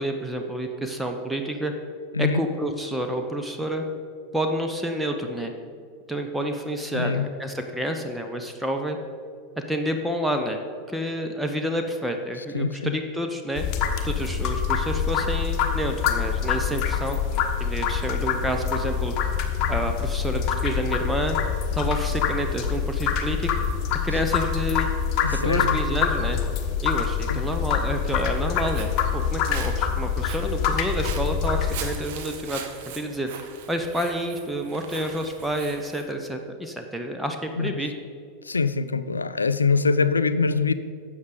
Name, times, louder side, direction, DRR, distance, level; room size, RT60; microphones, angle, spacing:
voice 1, 0.0-1.7 2.2-3.8 4.3-5.5 6.1-9.0 9.6-10.6 10.9-13.6 14.0-17.2 17.6-19.1 19.7-21.4 21.7-23.5 24.0-24.9 25.4-26.4 26.8-32.6 32.9-33.3 33.7-37.9, equal, 5° right, 4 dB, 0.8 m, -29 dB
voice 2, 6.9-7.3 12.4-12.9 25.2-25.8 27.3-27.4 37.6-37.8 38.4-40.7, left 4 dB, 85° left, 14 dB, 0.4 m, -24 dB
sound 1, 13.6-31.9, left 7 dB, 40° left, 1.2 m, -25 dB
Walk footsteps, 28.4-36.1, right 8 dB, 55° right, 1.1 m, -41 dB
13.0 x 8.0 x 3.9 m, 2.3 s
figure-of-eight pair, 90°, 0 cm